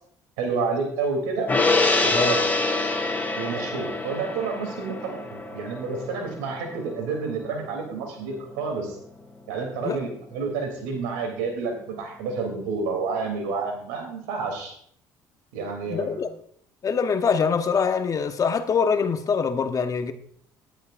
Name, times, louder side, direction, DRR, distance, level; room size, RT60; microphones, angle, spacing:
voice 1, 0.4-1.5 2.0-2.5 3.3-8.9 9.5-14.7 15.5-16.3, right 4 dB, 90° right, 2 dB, 3.1 m, -29 dB
Gong, 1.5-8.1 8.4-8.6, left 3 dB, 20° left, 2.9 m, -26 dB
voice 2, 15.9-16.3 16.8-20.1, left 6 dB, 40° left, 7 dB, 1.2 m, -24 dB
18.0 x 11.5 x 2.6 m, 0.64 s
supercardioid pair, 70°, 9 cm